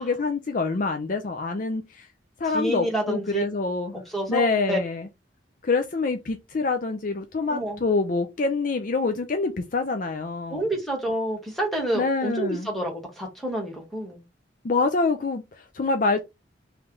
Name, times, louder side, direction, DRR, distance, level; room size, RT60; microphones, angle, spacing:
voice 1, 0.0-2.1 2.4-4.0 4.3-5.1 5.6-10.6 11.9-12.7 14.6-16.2, left 3 dB, 45° left, 0.5 m, -26 dB
voice 2, 2.5-3.4 4.1-4.8 7.5-7.8 10.5-14.2, right 1 dB, ahead, 1.3 m, -28 dB
3.2 x 3.1 x 3.7 m
head